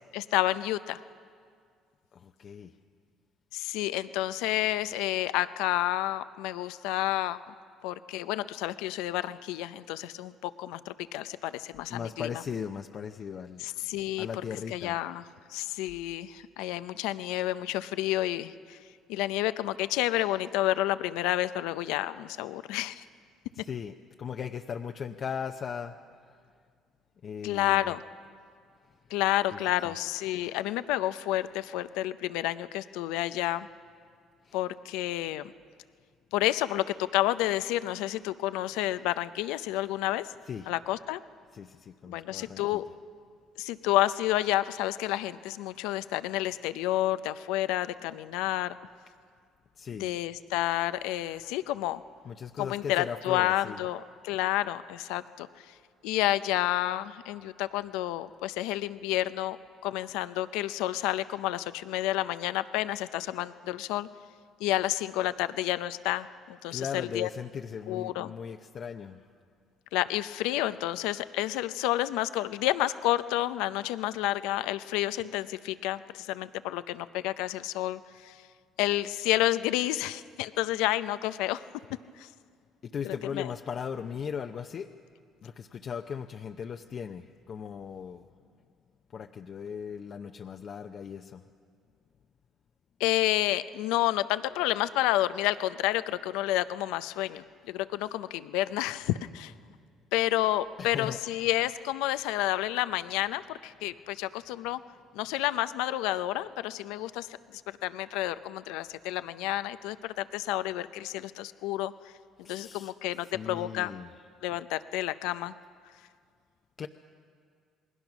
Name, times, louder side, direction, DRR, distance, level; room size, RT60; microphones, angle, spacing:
voice 1, 0.1-1.0 3.5-7.4 7.8-12.3 13.6-14.3 14.7-15.2 15.5-18.8 19.1-23.0 27.4-28.0 29.1-33.7 34.5-35.5 36.3-40.3 40.7-41.2 42.1-42.8 43.6-48.8 50.0-52.0 52.6-55.5 56.0-64.1 64.6-67.3 67.9-68.3 69.9-78.4 78.8-81.6 82.2-82.3 83.0-83.5 93.0-99.5 100.1-104.8 105.1-107.3 107.5-111.9 112.5-113.9 114.4-115.5, left 15 dB, 85° left, 13 dB, 0.5 m, -30 dB
voice 2, 2.1-2.7 11.9-13.6 14.2-15.0 23.5-26.0 27.2-27.9 29.5-30.0 34.4-34.6 40.4-40.7 41.5-42.8 49.8-50.1 52.2-53.8 66.7-69.2 82.8-84.9 85.4-88.2 89.1-91.4 100.8-101.6 112.4-112.9 113.3-114.3 116.8-116.9, left 7 dB, 50° left, 5 dB, 0.7 m, -38 dB
27.5 x 20.5 x 6.1 m, 2.1 s
supercardioid pair, 80°, 0 cm